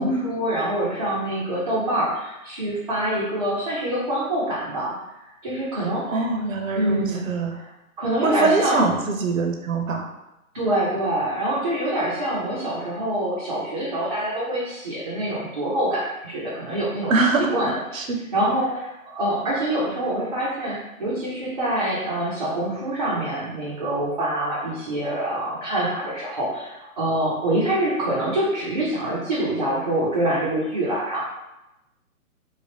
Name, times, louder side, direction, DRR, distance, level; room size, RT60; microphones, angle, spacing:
voice 1, 0.0-6.2 6.7-7.7 8.0-8.9 10.5-18.0 18.3-31.2, right 1 dB, 30° right, -8 dB, 0.4 m, -25 dB
voice 2, 6.1-7.5 8.2-10.1 17.1-17.5 17.9-18.2, right 3 dB, 65° right, 3 dB, 0.7 m, -23 dB
3.2 x 2.4 x 2.8 m, 0.95 s
figure-of-eight pair, 140°, 44 cm